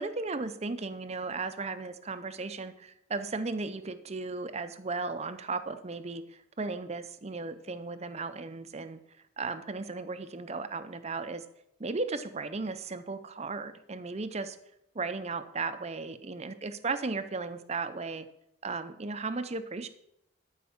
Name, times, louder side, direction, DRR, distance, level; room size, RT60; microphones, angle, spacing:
voice 1, 0.0-6.2 6.6-9.0 9.4-11.4 11.8-14.6 14.9-18.3 18.6-19.9, right 3 dB, 30° right, 11 dB, 0.6 m, -35 dB
13.0 x 4.8 x 7.1 m, 0.79 s
head